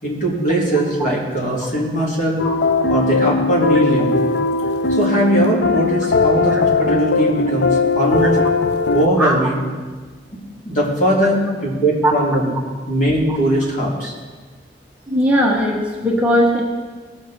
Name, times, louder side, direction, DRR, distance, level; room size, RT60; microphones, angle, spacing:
voice 1, 0.0-2.4 2.9-4.2 4.9-8.4 8.9-9.6 10.6-12.5 12.9-14.1, right 1 dB, 45° left, -4 dB, 3.3 m, -19 dB
sound 1, 2.4-9.1, left 4 dB, 65° left, 0.6 m, -18 dB
voice 2, 15.1-16.6, equal, 10° right, -3 dB, 1.4 m, -17 dB
19.0 x 7.3 x 4.5 m, 1.4 s
head